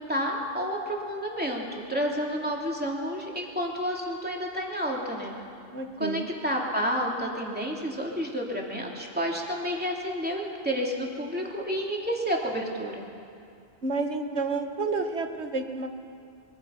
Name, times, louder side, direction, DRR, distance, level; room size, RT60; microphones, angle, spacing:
voice 1, 0.0-5.3 6.0-13.0, equal, 10° right, -2 dB, 3.0 m, -30 dB
voice 2, 5.7-6.3 13.8-15.9, right 3 dB, 70° right, 5 dB, 1.8 m, -30 dB
24.5 x 23.0 x 5.9 m, 2.5 s
omnidirectional pair, 1.2 m